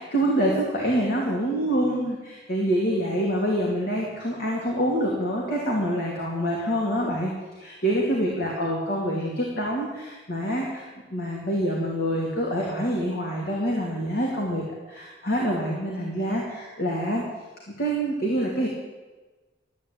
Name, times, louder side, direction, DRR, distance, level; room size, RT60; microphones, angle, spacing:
voice 1, 0.1-14.6 14.9-16.4 16.8-17.2 17.8-18.7, equal, 60° left, -2 dB, 2.9 m, -26 dB
13.5 x 9.0 x 9.1 m, 1.2 s
head